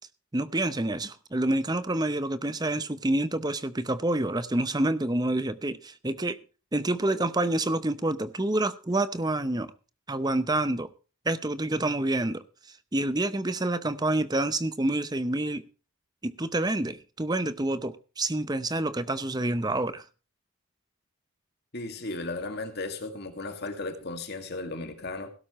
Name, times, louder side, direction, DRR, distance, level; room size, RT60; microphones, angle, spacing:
voice 1, 0.3-6.4 6.7-9.7 10.1-10.9 11.2-12.4 12.9-15.6 16.2-20.0, right 1 dB, 20° right, 0.7 m, -28 dB
voice 2, 21.7-25.3, left 2 dB, 45° left, 2.1 m, -35 dB
17.0 x 12.0 x 3.1 m
head